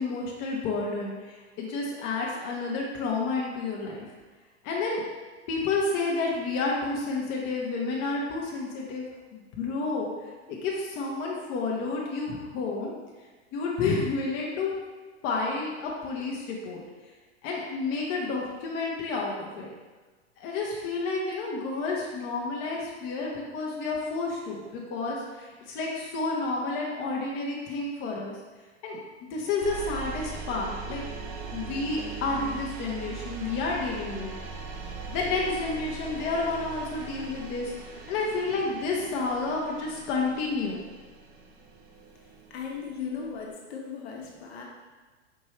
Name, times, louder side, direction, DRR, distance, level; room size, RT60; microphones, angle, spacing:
voice 1, 0.0-4.1 4.6-5.0 5.5-9.0 9.3-10.1 10.5-12.9 13.5-14.7 15.2-16.8 17.4-19.7 20.4-28.4 28.8-29.0 29.3-31.0 31.5-34.3 35.1-37.8 38.1-40.8, left 3 dB, 35° left, -2 dB, 0.7 m, -30 dB
sound 1, 29.6-43.5, right 5 dB, 30° right, 0.4 m, -40 dB
voice 2, 42.5-44.6, left 6 dB, 65° left, -1 dB, 0.9 m, -37 dB
4.5 x 2.6 x 3.1 m, 1.3 s
hypercardioid pair, 110°, 35 cm